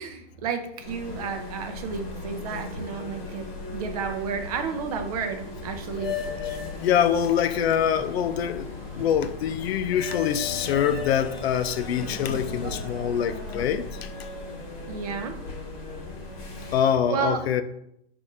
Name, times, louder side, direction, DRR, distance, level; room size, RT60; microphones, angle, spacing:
voice 1, 0.0-6.2 14.9-15.4 16.6-17.4, right 6 dB, 40° right, 6 dB, 0.5 m, -32 dB
sound 1, 0.8-16.8, left 4 dB, 35° left, 1.2 m, -36 dB
voice 2, 6.8-8.7 9.0-13.9 16.7-17.6, left 9 dB, 85° left, 11 dB, 0.5 m, -24 dB
sound 2, 7.9-13.7, right 3 dB, 60° right, 1.3 m, -47 dB
4.2 x 2.6 x 4.7 m, 0.75 s
supercardioid pair, 175°, 30 cm